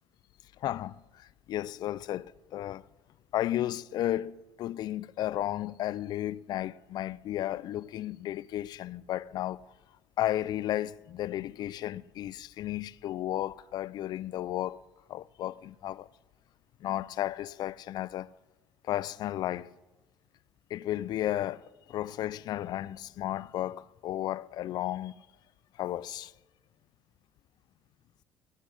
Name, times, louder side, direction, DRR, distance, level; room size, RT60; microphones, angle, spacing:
voice 1, 0.6-2.8 3.3-9.7 10.2-14.8 15.1-16.1 16.8-18.3 18.8-19.7 20.7-25.2 25.8-26.3, left 13 dB, 60° left, 0.3 m, -33 dB
15.5 x 7.4 x 6.4 m
supercardioid pair, 80°, 8 cm